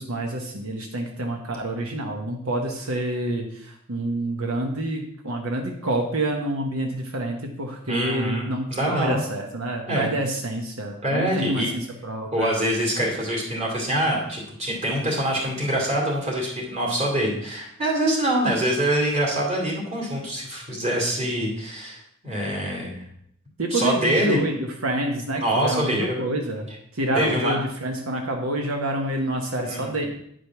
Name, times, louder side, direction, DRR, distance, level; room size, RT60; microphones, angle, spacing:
voice 1, 0.0-11.6 12.0-12.5 23.6-26.7 26.9-30.1, right 1 dB, 80° right, 2 dB, 1.1 m, -28 dB
voice 2, 7.9-9.2 9.9-10.1 11.0-11.7 12.3-23.0 23.7-24.4 25.4-26.2 27.1-27.6 29.6-29.9, right 1 dB, 30° right, -2 dB, 2.5 m, -25 dB
9.3 x 5.1 x 5.8 m, 0.72 s
head